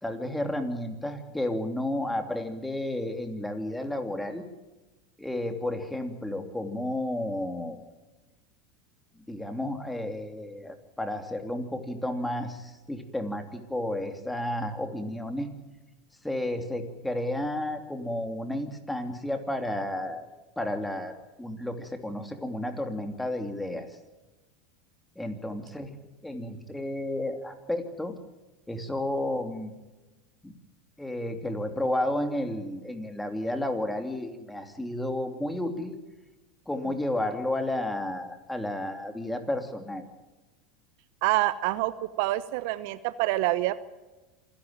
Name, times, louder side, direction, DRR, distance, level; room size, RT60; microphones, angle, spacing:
voice 1, 0.0-4.4 5.2-7.8 9.2-15.5 16.2-20.3 20.6-21.1 21.4-23.9 25.2-26.0 26.2-28.1 28.7-29.7 30.4-30.5 31.0-35.9 36.7-40.0, left 1 dB, 5° left, 6 dB, 3.0 m, -32 dB
voice 2, 41.2-43.8, right 16 dB, 65° right, 16 dB, 0.8 m, -27 dB
26.5 x 11.0 x 9.1 m, 1.1 s
hypercardioid pair, 90°, 0 cm